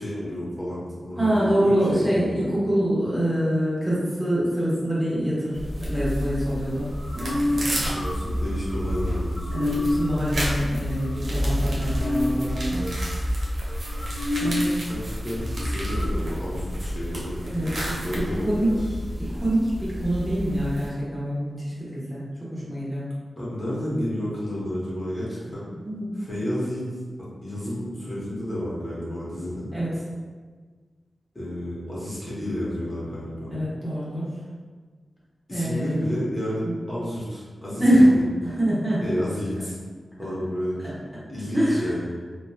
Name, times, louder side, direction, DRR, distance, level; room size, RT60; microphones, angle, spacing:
voice 1, 0.0-2.5 7.9-9.9 14.4-14.5 14.9-18.9 23.4-25.7 26.2-26.8 27.4-29.7 31.3-33.6 35.5-37.8 39.0-39.8 40.2-40.9 41.3-42.1, equal, 35° left, -8 dB, 0.9 m, -31 dB
voice 2, 1.2-7.9 9.5-12.9 14.4-14.8 17.4-17.7 18.1-18.7 19.2-22.2 22.5-23.1 25.7-26.2 29.7-29.9 33.5-34.4 35.5-36.0 36.6-36.7 37.8-38.1 38.4-39.0 40.8-40.9 41.5-41.8, equal, 15° right, -9 dB, 1.1 m, -25 dB
sound 1, 5.5-20.9, equal, 70° right, 0.6 m, -31 dB
sound 2, 6.8-14.7 15.0-15.1 15.3-16.1, left 1 dB, 70° left, 0.8 m, -29 dB
2.8 x 2.2 x 2.2 m, 1.5 s
cardioid pair, 55°, 0 cm